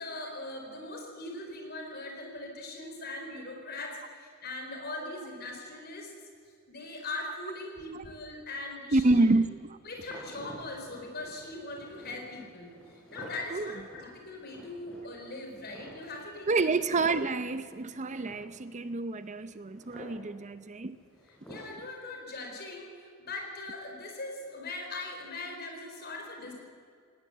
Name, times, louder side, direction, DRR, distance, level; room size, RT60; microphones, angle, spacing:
voice 1, 0.0-6.1 6.7-9.3 9.8-12.7 13.1-16.8 21.5-26.5, left 2 dB, 50° left, 2 dB, 4.6 m, -40 dB
voice 2, 8.9-9.8 13.5-13.7 16.5-21.0, right 2 dB, 35° right, 12 dB, 0.6 m, -28 dB
sound 1, 9.9-21.7, equal, 5° left, 5.9 m, -51 dB
19.0 x 18.0 x 8.1 m, 2.2 s
head